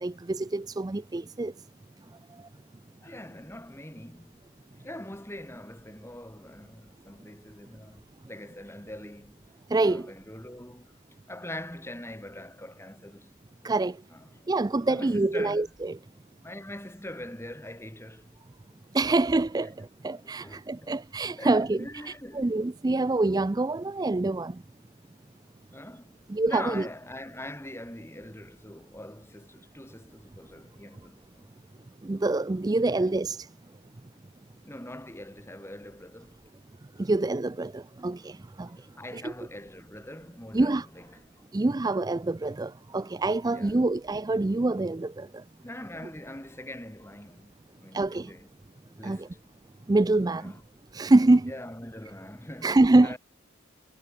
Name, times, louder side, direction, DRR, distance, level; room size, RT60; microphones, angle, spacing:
voice 1, 0.0-1.5 9.7-10.1 13.6-14.0 14.5-15.9 18.9-24.6 26.3-26.8 32.0-33.5 37.0-38.7 39.1-39.3 40.5-40.9 41.5-45.4 47.9-48.3 49.0-49.3 49.9-50.5 50.9-51.5 52.6-53.2, right 2 dB, 20° right, 0.4 m, -25 dB
voice 2, 3.0-4.4 4.8-9.5 9.8-11.0 11.3-13.3 14.1-14.5 14.9-15.7 16.4-18.4 20.2-21.0 21.4-22.5 25.7-26.2 26.5-31.5 32.9-33.1 34.6-36.4 38.7-41.4 43.4-43.9 45.6-47.5 47.8-48.5 49.0-49.4 50.3-50.6 51.5-53.2, left 1 dB, 10° left, 4.7 m, -43 dB
head